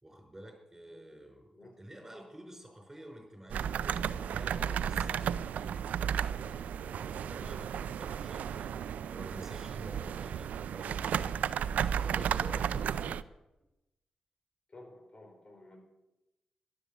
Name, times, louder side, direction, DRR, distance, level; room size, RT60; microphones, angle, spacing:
voice 1, 0.0-3.8 4.2-8.7 9.1-11.3 11.9-13.1, right 1 dB, 15° right, 1 dB, 5.1 m, -50 dB
sound 1, 3.5-13.2, right 8 dB, 75° right, 0.5 m, -33 dB
voice 2, 14.7-15.8, left 2 dB, 40° left, 4 dB, 4.5 m, -53 dB
12.5 x 11.5 x 7.1 m, 0.96 s
supercardioid pair, 50°, 3 cm